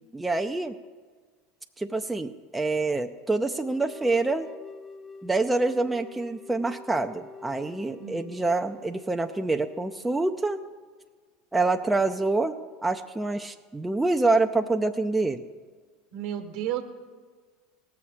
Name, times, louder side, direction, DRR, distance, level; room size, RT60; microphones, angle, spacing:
voice 1, 0.1-0.7 1.8-4.5 5.2-10.6 11.5-12.6 12.8-15.4, right 3 dB, 10° right, 5 dB, 0.5 m, -26 dB
sound 1, 3.6-10.4, left 4 dB, 30° left, 0.9 m, -47 dB
voice 2, 8.0-8.4 16.1-16.8, right 11 dB, 65° right, 7 dB, 1.3 m, -32 dB
18.0 x 7.1 x 5.0 m, 1.5 s
hypercardioid pair, 85°, 0 cm